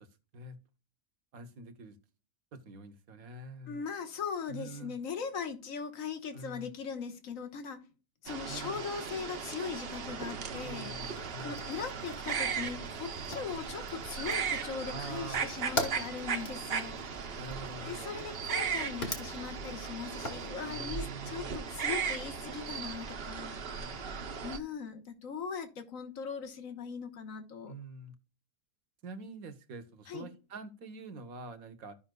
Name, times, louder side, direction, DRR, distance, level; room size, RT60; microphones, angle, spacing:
voice 1, 1.3-2.0 2.5-3.8 4.5-5.0 6.3-6.7 8.5-8.8 10.6-11.6 14.9-15.5 17.4-18.1 20.6-21.6 23.7-24.0 27.7-28.1 29.0-32.0, right 2 dB, 70° right, 1.4 m, -45 dB
voice 2, 3.7-7.8 8.2-17.0 17.8-27.7 30.1-30.3, left 6 dB, 65° left, 1.5 m, -40 dB
sound 1, 8.3-24.6, right 6 dB, 50° right, 0.9 m, -37 dB
Fire, 11.1-20.5, left 1 dB, 45° left, 1.7 m, -43 dB
14.0 x 5.6 x 2.2 m
omnidirectional pair, 1.6 m